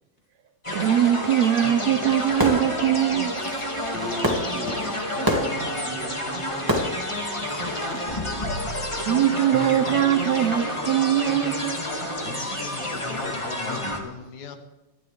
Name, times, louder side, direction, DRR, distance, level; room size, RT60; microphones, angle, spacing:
sound 1, 0.6-14.0, left 1 dB, 10° left, 1.5 m, -29 dB
voice 1, 0.7-3.3 7.6-7.8 8.1-8.2 8.6-11.8, right 11 dB, 75° right, 8 dB, 1.7 m, -22 dB
Fireworks, 2.0-8.1, equal, 10° right, 1.7 m, -30 dB
voice 2, 3.9-6.8, right 2 dB, 40° right, 0 dB, 0.9 m, -37 dB
voice 3, 12.2-14.6, left 6 dB, 70° left, 7 dB, 2.6 m, -39 dB
21.0 x 13.0 x 3.5 m, 1.0 s
omnidirectional pair, 3.7 m